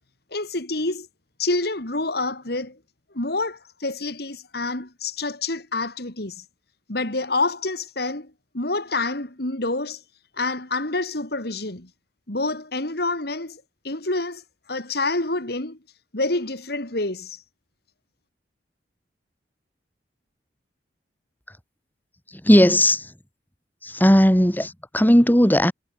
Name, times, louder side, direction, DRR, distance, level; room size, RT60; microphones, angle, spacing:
voice 1, 0.3-1.1 1.4-2.8 3.1-6.4 6.9-10.0 10.4-11.9 12.3-14.4 14.7-15.8 16.1-17.4, left 2 dB, 60° left, 3.5 m, -27 dB
voice 2, 22.3-23.1 23.8-25.7, equal, 10° left, 6.9 m, -17 dB
head